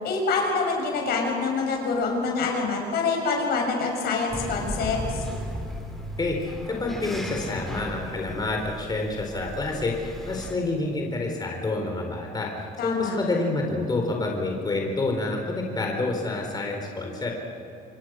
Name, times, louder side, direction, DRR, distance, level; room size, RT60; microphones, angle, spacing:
voice 1, 0.0-5.3 12.8-13.2, left 4 dB, 70° left, 1 dB, 6.6 m, -26 dB
sound 1, 4.3-10.5, equal, ahead, 4.8 m, -35 dB
voice 2, 6.2-17.3, left 2 dB, 25° left, 1 dB, 4.2 m, -28 dB
27.5 x 23.5 x 6.4 m, 2.8 s
cardioid pair, 110°, 17 cm